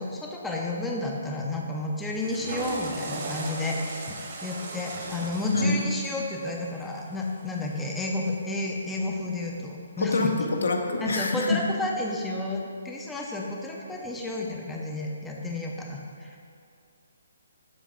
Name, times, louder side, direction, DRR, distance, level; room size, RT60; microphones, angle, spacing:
voice 1, 0.0-10.3 11.0-16.5, left 2 dB, 5° left, -1 dB, 0.4 m, -31 dB
Water / Toilet flush, 2.1-8.3, right 3 dB, 45° right, 1.1 m, -38 dB
voice 2, 10.0-10.3 10.6-11.6, left 3 dB, 80° left, 3 dB, 0.8 m, -25 dB
7.5 x 3.2 x 5.4 m, 2.3 s
hypercardioid pair, 160°, 0 cm